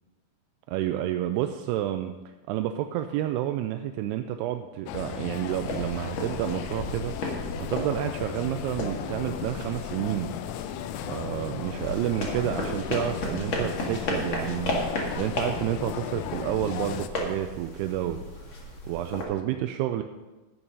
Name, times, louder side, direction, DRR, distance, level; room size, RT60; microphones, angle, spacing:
voice 1, 0.7-2.1 2.5-10.3 10.7-10.8 11.1-20.0, right 12 dB, 85° right, 7 dB, 2.6 m, -30 dB
sound 1, 4.9-17.1, left 10 dB, 85° left, 2.0 m, -36 dB
sound 2, 5.5-19.2, left 1 dB, 40° left, 1.9 m, -35 dB
12.5 x 8.7 x 5.3 m, 1.1 s
omnidirectional pair, 4.7 m